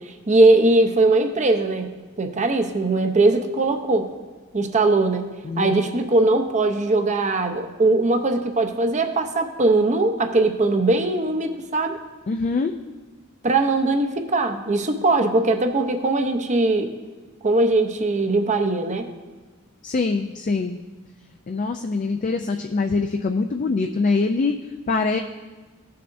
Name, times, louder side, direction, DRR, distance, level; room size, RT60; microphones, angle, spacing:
voice 1, 0.1-1.9 2.2-4.1 4.5-5.3 5.6-12.0 13.4-16.9 17.4-19.1, right 2 dB, 35° right, 6 dB, 0.7 m, -20 dB
voice 2, 12.3-12.7 19.8-20.8 21.5-24.6 24.9-25.2, left 4 dB, 35° left, 5 dB, 0.3 m, -23 dB
16.0 x 6.7 x 2.6 m, 1.3 s
head